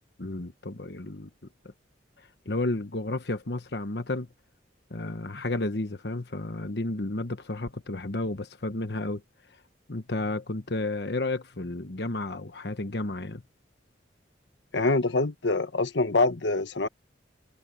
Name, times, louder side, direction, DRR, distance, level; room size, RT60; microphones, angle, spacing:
voice 1, 0.2-1.3 2.2-4.3 4.9-9.2 9.9-13.4, left 2 dB, 65° left, 1.2 m, -32 dB
voice 2, 14.7-16.9, left 3 dB, 80° left, 1.3 m, -25 dB
head